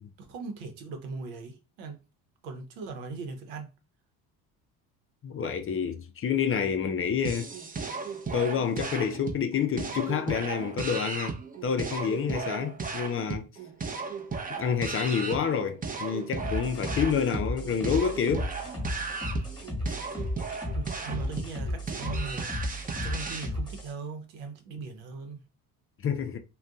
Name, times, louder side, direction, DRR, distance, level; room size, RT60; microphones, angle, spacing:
voice 1, 0.2-2.0 2.4-3.7 20.7-22.5 22.9-25.4, right 4 dB, 85° right, 0.9 m, -39 dB
voice 2, 5.2-7.5 8.3-13.5 14.6-18.5 19.9-20.0 26.0-26.4, left 7 dB, 30° left, 0.5 m, -28 dB
sound 1, 7.2-23.5, right 4 dB, 20° right, 0.6 m, -36 dB
sound 2, 16.4-23.9, left 1 dB, 10° left, 1.4 m, -34 dB
2.5 x 2.3 x 3.5 m
supercardioid pair, 75°, 42 cm